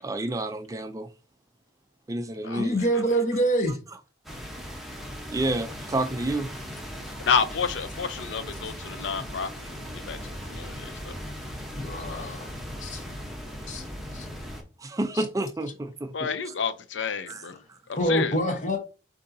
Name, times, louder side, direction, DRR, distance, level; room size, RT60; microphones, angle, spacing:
voice 1, 0.0-1.1 2.1-2.8 5.3-6.5 14.8-16.5 17.3-17.4 17.7-17.8, right 2 dB, 15° right, 0.3 m, -30 dB
voice 2, 2.5-3.8 9.2-9.3 11.8-12.5 12.8-13.0 13.7-13.9 14.1-14.3 15.1-15.2 17.9-18.8, right 1 dB, 40° left, 0.9 m, -26 dB
sound 1, 4.2-14.6, equal, ahead, 0.8 m, -38 dB
voice 3, 7.2-11.1 12.0-12.4 16.1-17.6 17.9-18.4, left 6 dB, 75° left, 0.5 m, -30 dB
6.6 x 2.7 x 2.6 m
head